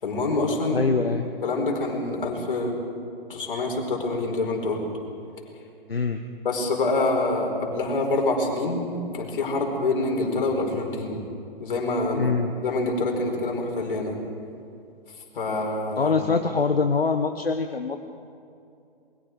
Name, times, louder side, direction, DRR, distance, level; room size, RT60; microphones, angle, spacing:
voice 1, 0.0-0.8 1.4-2.8 3.3-4.9 6.4-11.3 11.6-12.2 12.6-14.1 15.3-16.2, left 2 dB, 60° left, 1 dB, 5.1 m, -26 dB
voice 2, 0.7-1.3 5.9-6.2 12.1-12.6 16.0-18.0, left 4 dB, 85° left, 6 dB, 1.1 m, -24 dB
28.0 x 22.0 x 4.8 m, 2.6 s
figure-of-eight pair, 125°, 29 cm